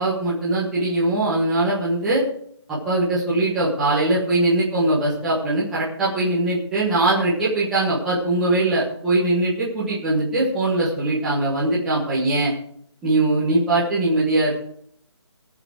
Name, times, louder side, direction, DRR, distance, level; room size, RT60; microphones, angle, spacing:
voice 1, 0.0-2.2 2.7-12.5 13.0-14.5, right 2 dB, ahead, -11 dB, 1.4 m, -21 dB
20.0 x 6.9 x 4.9 m, 0.63 s
hypercardioid pair, 180°, 15 cm